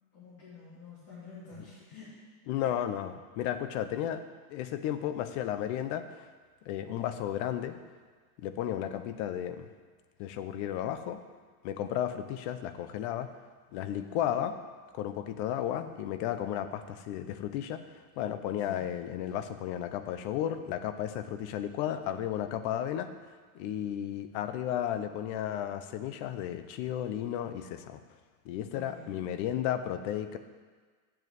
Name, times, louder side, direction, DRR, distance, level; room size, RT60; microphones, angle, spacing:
voice 1, 0.1-2.1 13.9-14.3 18.6-18.8 28.7-29.2, left 4 dB, 30° left, -10 dB, 3.7 m, -49 dB
voice 2, 2.5-4.2 4.5-6.3 6.6-7.8 8.4-9.7 10.2-11.2 11.6-13.3 13.7-14.6 14.9-17.8 18.2-23.1 23.5-28.0 28.4-30.4, left 10 dB, 50° left, 10 dB, 0.9 m, -33 dB
7.8 x 7.4 x 8.1 m, 1.5 s
supercardioid pair, 150°, 44 cm